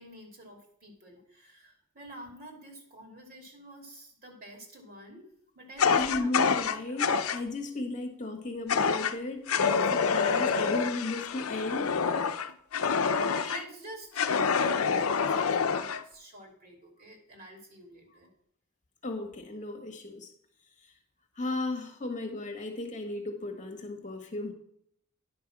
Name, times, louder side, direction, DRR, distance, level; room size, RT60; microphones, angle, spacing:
voice 1, 0.0-5.3 5.5-6.3 12.9-18.3, right 1 dB, 45° right, 2 dB, 2.9 m, -48 dB
Fire, 5.8-7.4 8.7-9.1 9.5-13.6 14.2-16.0, left 6 dB, 80° left, 0.6 m, -27 dB
voice 2, 5.9-11.9 19.0-20.3 21.3-24.5, left 2 dB, 35° left, 4 dB, 1.5 m, -35 dB
10.5 x 5.6 x 6.0 m, 0.68 s
head